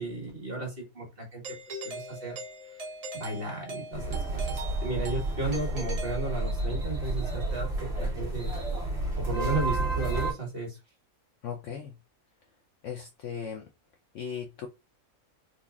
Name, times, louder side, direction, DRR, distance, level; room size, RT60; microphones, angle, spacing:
voice 1, 0.0-1.4 1.7-2.4 3.1-7.7 8.0-8.5 9.2-10.8, right 2 dB, 45° right, 0 dB, 1.4 m, -34 dB
Doorbell, 1.4-6.9, right 2 dB, 65° right, 0.3 m, -41 dB
sound 1, 3.9-10.3, right 2 dB, 25° right, 1.8 m, -31 dB
voice 2, 11.4-11.9 12.8-13.6 14.1-14.7, left 7 dB, 65° left, 3 dB, 0.9 m, -37 dB
3.9 x 2.9 x 2.3 m, 0.25 s
omnidirectional pair, 1.5 m